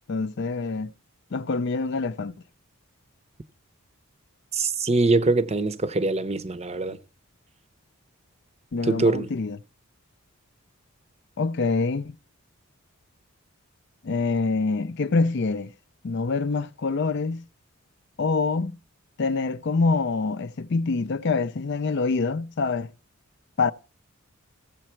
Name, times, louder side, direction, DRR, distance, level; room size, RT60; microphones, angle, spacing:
voice 1, 0.1-0.9 1.3-2.3 8.7-9.6 11.4-12.2 14.0-15.7 16.0-17.5 18.2-18.8 19.2-22.9 23.6-23.7, left 4 dB, 50° left, 0.4 m, -25 dB
voice 2, 4.5-7.0 8.8-9.3, right 3 dB, 30° right, 0.7 m, -23 dB
15.5 x 7.4 x 4.5 m
head